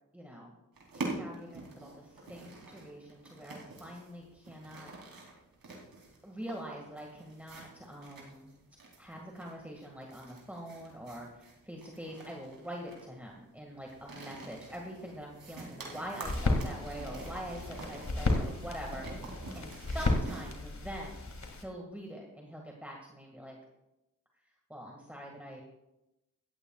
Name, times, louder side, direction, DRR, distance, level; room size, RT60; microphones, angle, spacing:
voice 1, 0.1-0.6 0.9-4.9 6.2-8.5 9.0-21.2 21.6-23.6 24.7-25.6, equal, 5° right, -1 dB, 1.9 m, -44 dB
sound 1, 0.8-20.6, right 2 dB, 90° right, 3.1 m, -46 dB
sound 2, 16.2-21.6, left 2 dB, 55° left, 2.2 m, -33 dB
16.5 x 13.5 x 2.4 m, 0.94 s
cardioid pair, 70°, 34 cm